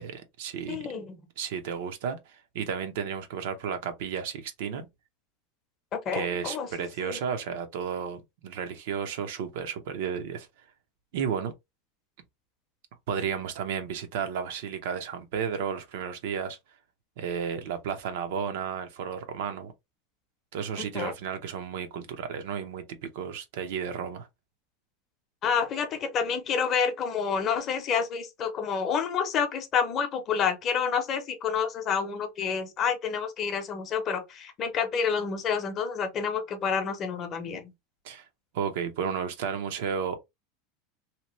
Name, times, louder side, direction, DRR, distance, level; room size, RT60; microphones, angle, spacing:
voice 1, 0.0-0.8 1.4-4.9 6.1-10.5 11.1-11.5 13.1-16.6 17.2-19.7 20.5-24.3 38.0-38.3 38.5-40.2, right 7 dB, 70° right, 0.6 m, -33 dB
voice 2, 0.7-1.2 6.1-7.2 20.9-21.1 25.4-37.7, left 6 dB, 30° left, 0.7 m, -29 dB
2.8 x 2.1 x 2.9 m
supercardioid pair, 150°, 0 cm